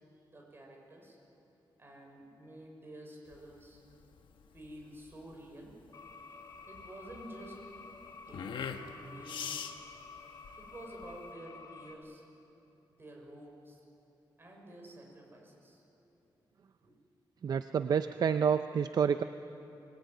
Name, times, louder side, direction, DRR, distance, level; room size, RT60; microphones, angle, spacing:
voice 1, 0.2-1.2 1.8-3.8 4.5-5.8 6.7-7.6 8.1-9.7 10.6-12.2 12.9-13.9 14.4-15.8 16.8-16.9 18.1-18.2, right 1 dB, 30° right, 0 dB, 5.7 m, -50 dB
sound 1, 3.3-11.3, left 7 dB, 80° left, 1.3 m, -44 dB
sound 2, 5.9-11.9, left 4 dB, 45° left, 2.8 m, -51 dB
voice 2, 17.4-19.2, right 7 dB, 55° right, 10 dB, 0.6 m, -28 dB
25.0 x 20.5 x 9.3 m, 3.0 s
wide cardioid pair, 140°, 8 cm